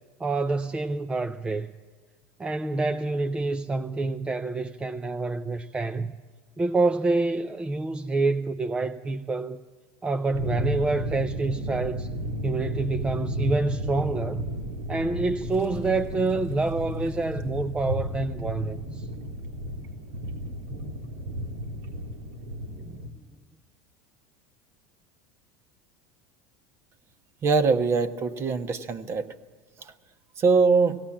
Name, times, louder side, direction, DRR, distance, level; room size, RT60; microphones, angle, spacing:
voice 1, 0.2-1.7 2.4-6.1 6.6-9.6 10.0-12.1 12.4-14.5 14.9-19.1 22.8-23.1, right 3 dB, 15° right, 0.5 m, -27 dB
sound 1, 10.3-23.1, equal, 80° right, 3.4 m, -33 dB
voice 2, 27.4-29.3 30.4-31.0, right 4 dB, 35° right, 1.2 m, -22 dB
17.5 x 17.5 x 8.7 m
supercardioid pair, 130°, 8 cm